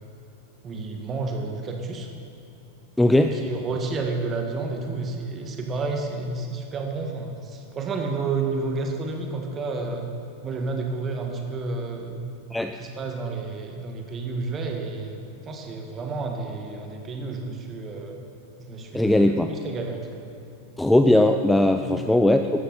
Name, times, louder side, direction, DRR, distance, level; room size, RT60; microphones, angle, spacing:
voice 1, 0.6-2.1 3.2-10.1 10.4-12.2 12.8-18.2 18.6-20.3 21.8-21.9, right 3 dB, 25° right, 3 dB, 2.0 m, -31 dB
voice 2, 3.0-3.3 12.5-12.7 18.9-19.5 20.8-22.6, left 1 dB, 5° left, 7 dB, 0.5 m, -19 dB
16.5 x 13.5 x 4.4 m, 3.0 s
figure-of-eight pair, 90°, 0 cm